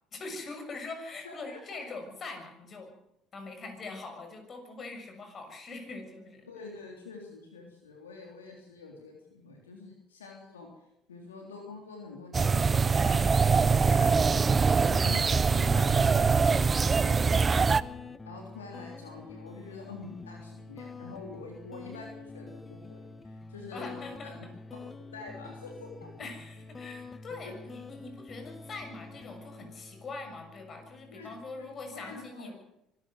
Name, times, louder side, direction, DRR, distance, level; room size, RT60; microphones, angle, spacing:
voice 1, 0.1-2.9 3.3-6.5 23.7-24.5 26.2-32.5, left 3 dB, 40° left, 5 dB, 6.7 m, -43 dB
voice 2, 1.2-1.8 6.5-10.7 11.1-14.4 14.9-17.9 18.2-26.1 27.4-27.5 31.1-31.3 31.5-32.6, left 4 dB, 90° left, 1 dB, 3.4 m, -46 dB
sound 1, 12.3-17.8, right 5 dB, 30° right, 0.8 m, -23 dB
sound 2, 17.2-32.3, left 3 dB, 25° left, 1.6 m, -47 dB
24.5 x 14.0 x 7.9 m, 0.81 s
hypercardioid pair, 60°, 0 cm